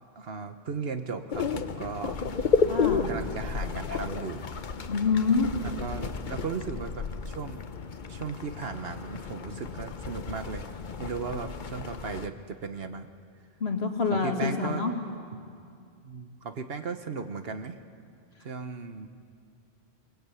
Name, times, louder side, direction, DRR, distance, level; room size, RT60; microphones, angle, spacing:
voice 1, 0.2-2.1 3.1-4.4 5.6-7.6 8.1-10.6 11.0-13.1 14.1-14.8 15.3-15.4 16.0-17.8 18.4-19.1, right 5 dB, 65° right, 8 dB, 1.3 m, -36 dB
sound 1, 1.3-12.3, left 5 dB, 50° left, 1.0 m, -32 dB
voice 2, 2.7-3.1 4.9-5.5 13.6-14.9, left 4 dB, 75° left, 3 dB, 2.3 m, -26 dB
23.0 x 20.5 x 8.4 m, 2.3 s
omnidirectional pair, 1.1 m